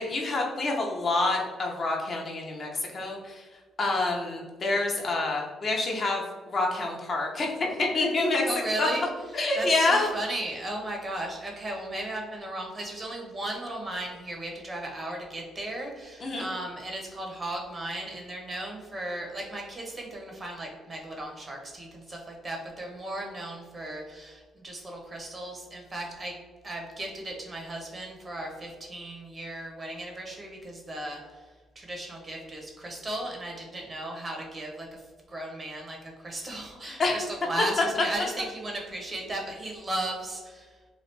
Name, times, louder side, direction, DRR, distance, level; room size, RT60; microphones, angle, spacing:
voice 1, 0.0-3.5 3.8-8.4 8.8-8.9 9.3-10.1 16.2-16.5 36.8-37.2, left 2 dB, 45° left, 0 dB, 0.7 m, -27 dB
voice 2, 8.4-9.1 9.6-26.4 26.6-31.4 31.7-35.0 35.3-40.8, right 1 dB, 30° right, 0 dB, 0.9 m, -36 dB
3.0 x 2.4 x 3.3 m, 1.4 s
cardioid pair, 90°, 0 cm